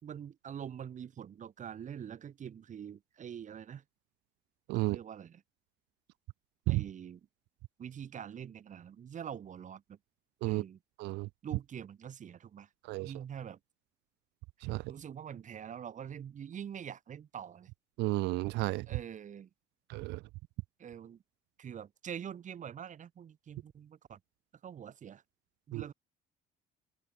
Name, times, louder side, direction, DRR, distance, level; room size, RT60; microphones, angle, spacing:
voice 1, 0.0-3.8 4.7-5.4 6.7-7.2 7.8-10.0 10.4-10.8 11.4-12.7 13.0-13.6 14.9-17.7 18.9-19.5 20.8-21.2 21.6-24.2 24.6-25.2 25.7-25.9, right 8 dB, 45° right, 6.0 m, -45 dB
voice 2, 4.7-5.0 6.7-6.8 10.4-10.6 11.0-11.3 12.9-13.1 14.6-14.8 18.0-18.9 19.9-20.2 25.7-25.8, right 21 dB, 90° right, 0.7 m, -32 dB
open air
cardioid pair, 110°, 17 cm